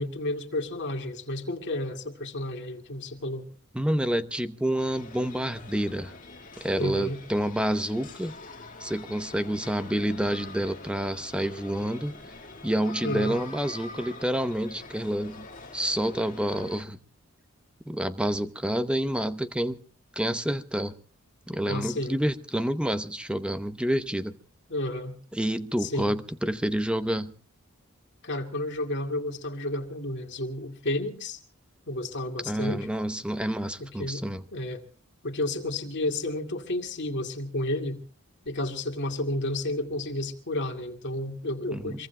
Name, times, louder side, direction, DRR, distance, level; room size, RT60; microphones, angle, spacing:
voice 1, 0.0-3.5 6.8-7.2 13.0-13.4 21.6-22.2 24.7-25.2 25.8-26.1 28.2-31.4 31.9-32.9 33.8-34.2 34.5-34.8 35.2-38.0 38.5-42.1, left 1 dB, 55° left, 2.2 m, -31 dB
voice 2, 3.7-6.1 6.6-8.3 8.8-12.1 12.6-15.5 15.7-17.0 17.9-19.8 20.2-20.9 21.5-24.4 25.3-27.3 32.4-34.4 41.7-42.0, right 1 dB, 5° right, 0.8 m, -28 dB
sound 1, 4.8-16.8, left 3 dB, 40° left, 2.0 m, -45 dB
26.5 x 22.5 x 2.2 m
head